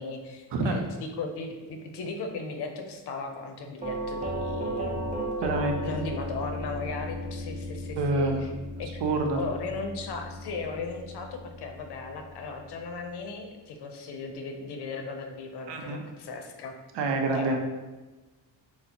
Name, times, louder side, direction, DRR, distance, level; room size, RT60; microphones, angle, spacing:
voice 1, 0.0-5.3 5.8-8.5 8.8-9.0 9.3-16.7 17.3-17.6, left 3 dB, 60° left, 4 dB, 0.6 m, -37 dB
Doorbell, 3.8-12.7, equal, 15° right, 0.7 m, -35 dB
voice 2, 5.4-6.0 8.0-8.4 9.0-9.4 15.7-16.0 16.9-17.6, right 2 dB, 65° right, 3 dB, 0.6 m, -27 dB
3.9 x 2.1 x 2.8 m, 1.2 s
cardioid pair, 65°, 46 cm